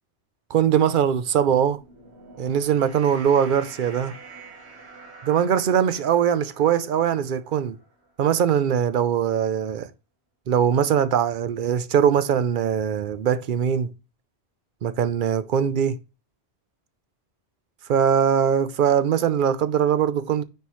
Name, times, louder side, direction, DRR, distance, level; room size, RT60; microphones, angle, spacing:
voice 1, 0.5-1.8 2.4-4.2 5.2-7.8 8.2-9.9 10.5-13.9 14.8-16.0 17.9-20.4, right 8 dB, 55° right, 0.7 m, -21 dB
sound 1, 1.6-8.1, right 3 dB, 75° right, 1.9 m, -46 dB
9.7 x 3.6 x 3.0 m
omnidirectional pair, 1.1 m